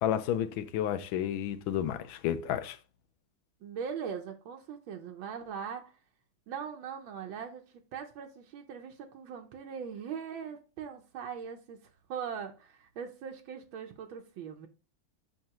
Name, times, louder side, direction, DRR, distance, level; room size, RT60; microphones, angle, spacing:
voice 1, 0.0-2.8, left 10 dB, 80° left, 1.4 m, -31 dB
voice 2, 3.6-5.9 6.5-14.7, right 7 dB, 85° right, 1.6 m, -41 dB
6.6 x 5.5 x 2.9 m
omnidirectional pair, 2.1 m